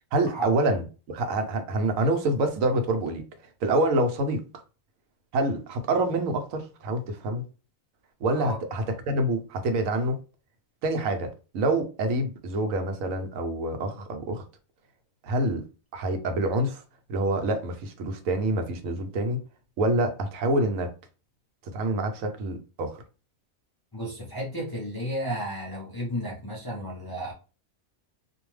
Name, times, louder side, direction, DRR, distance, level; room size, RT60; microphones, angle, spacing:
voice 1, 0.1-3.3 3.6-4.4 5.3-7.4 8.2-10.2 10.8-14.4 15.2-15.7 15.9-16.8 17.1-19.4 19.8-20.9 21.6-23.0, right 1 dB, 80° right, 1.0 m, -26 dB
voice 2, 23.9-27.3, equal, 25° left, 0.5 m, -33 dB
2.5 x 2.2 x 3.1 m
omnidirectional pair, 1.4 m